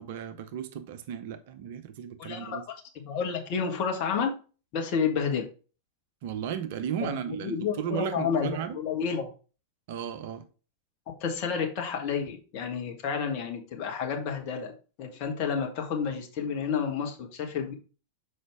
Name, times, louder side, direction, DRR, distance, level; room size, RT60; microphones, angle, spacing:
voice 1, 0.0-2.6 6.2-8.8 9.9-10.5, right 9 dB, 50° right, 0.7 m, -35 dB
voice 2, 2.2-4.3 4.7-5.5 7.0-9.3 11.2-17.7, left 6 dB, 45° left, 1.5 m, -30 dB
6.2 x 5.0 x 3.5 m
figure-of-eight pair, 90°, 0 cm